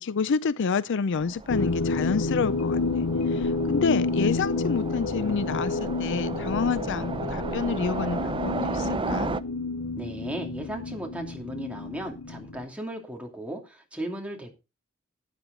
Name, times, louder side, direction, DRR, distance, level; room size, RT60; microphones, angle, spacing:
voice 1, 0.0-3.1 3.3-9.3, left 5 dB, 60° left, 0.5 m, -28 dB
Train, 1.2-9.4, right 3 dB, 25° right, 0.5 m, -34 dB
sound 1, 1.5-12.7, left 3 dB, 85° left, 0.8 m, -29 dB
voice 2, 10.0-14.5, right 1 dB, 5° right, 2.6 m, -36 dB
12.5 x 9.3 x 3.9 m
head